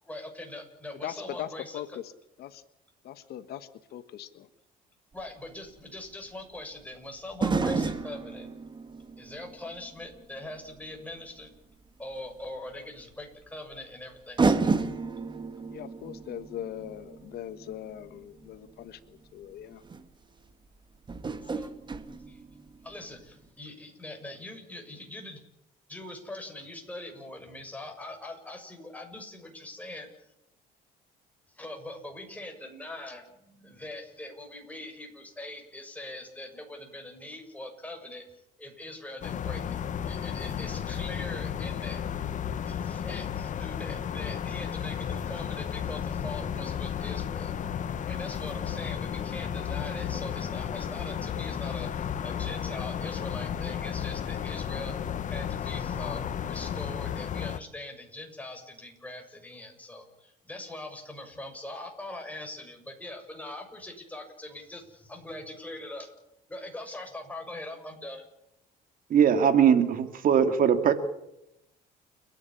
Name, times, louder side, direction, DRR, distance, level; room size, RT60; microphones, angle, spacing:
voice 1, 0.0-1.8 5.1-8.5 9.2-11.5 12.0-14.7 21.5-21.7 22.3-22.4 22.8-25.4 25.9-30.3 31.5-38.3 38.6-39.6 40.0-42.0 42.6-47.6 48.0-55.0 55.3-66.1 66.5-68.2, left 1 dB, 10° left, 3 dB, 6.7 m, -42 dB
voice 2, 0.9-2.1 2.4-2.6 3.0-4.5 15.7-19.8, left 11 dB, 70° left, 12 dB, 1.4 m, -40 dB
sound 1, 5.2-5.3 7.3-10.3 10.8-10.9 12.4-12.5 13.7-13.8 14.4-18.5 19.4-19.5 19.8-20.0 21.1-23.0 23.2-23.3, right 4 dB, 25° right, 2.1 m, -31 dB
sound 2, 39.2-57.6, left 8 dB, 50° left, 1.2 m, -33 dB
voice 3, 69.1-70.9, right 8 dB, 55° right, 9 dB, 2.3 m, -21 dB
30.0 x 11.0 x 10.0 m, 0.83 s
cardioid pair, 110°, 17 cm